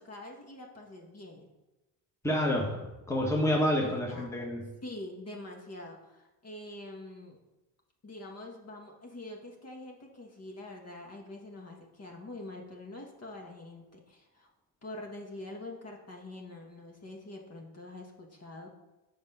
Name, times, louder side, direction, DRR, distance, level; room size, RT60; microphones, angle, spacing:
voice 1, 0.0-1.5 3.8-4.3 4.8-7.4 8.0-14.5 14.8-18.7, left 2 dB, 35° left, 1 dB, 1.8 m, -45 dB
voice 2, 2.2-4.7, left 1 dB, 5° left, -1 dB, 1.4 m, -29 dB
7.1 x 5.3 x 5.7 m, 1.0 s
cardioid pair, 95°, 41 cm